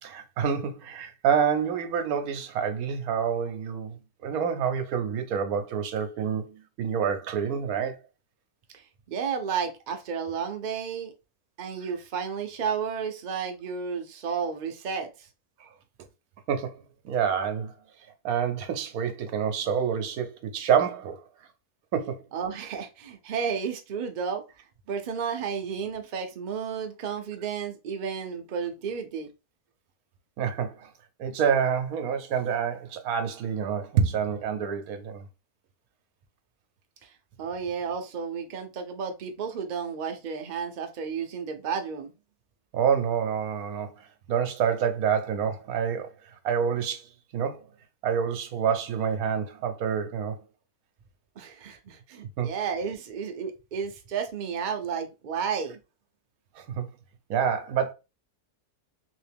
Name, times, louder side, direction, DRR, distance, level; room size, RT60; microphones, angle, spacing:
voice 1, 0.0-8.0 15.6-15.7 16.5-16.8 17.0-17.7 18.2-21.2 21.9-22.2 30.4-30.9 31.2-35.2 42.7-47.6 48.0-50.4 52.4-52.5 56.5-56.9 57.3-57.9, right 7 dB, 70° right, 1.1 m, -27 dB
voice 2, 8.7-11.1 11.6-15.3 22.3-24.4 24.9-29.3 37.0-37.1 37.4-42.1 51.4-55.8, right 6 dB, 85° right, 0.4 m, -32 dB
3.0 x 2.8 x 3.4 m
omnidirectional pair, 1.7 m